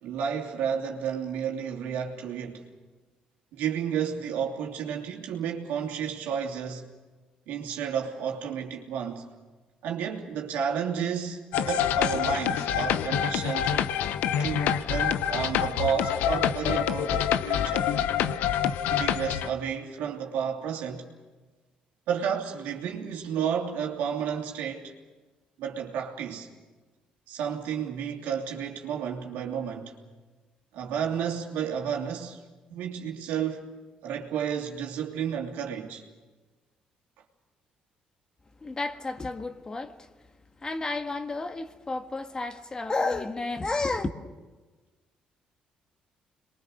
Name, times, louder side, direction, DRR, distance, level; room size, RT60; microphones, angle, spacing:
voice 1, 0.0-2.6 3.5-6.9 7.5-9.3 9.8-11.4 11.7-13.7 14.4-17.9 18.9-21.0 22.1-24.9 25.6-26.5 27.3-29.9 30.7-32.4 32.7-33.7 34.0-36.0, right 7 dB, 90° right, 2.9 m, -31 dB
sound 1, 11.5-19.5, left 9 dB, 90° left, 0.8 m, -26 dB
voice 2, 38.6-40.1 40.6-44.1, left 3 dB, 25° left, 1.7 m, -31 dB
27.0 x 22.5 x 6.5 m
cardioid pair, 90°, 3 cm